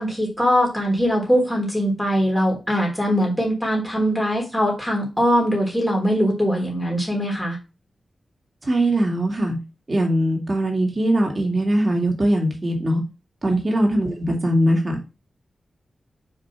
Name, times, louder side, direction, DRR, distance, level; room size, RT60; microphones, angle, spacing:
voice 1, 0.0-7.6 13.4-13.6, equal, 5° left, -1 dB, 3.4 m, -21 dB
voice 2, 8.7-9.6 9.9-13.0 13.4-15.0, right 1 dB, 30° right, 1 dB, 2.3 m, -21 dB
5.3 x 5.0 x 6.0 m, 0.28 s
wide cardioid pair, 145°, 0 cm